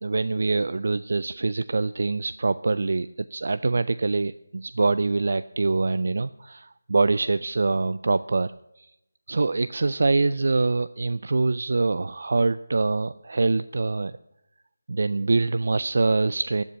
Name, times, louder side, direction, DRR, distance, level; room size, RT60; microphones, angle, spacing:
voice 1, 0.0-8.5 8.8-8.9 9.3-14.1 14.9-16.6, right 3 dB, 55° right, 15 dB, 0.4 m, -24 dB
12.5 x 7.3 x 9.4 m, 0.84 s
figure-of-eight pair, 165°, 0 cm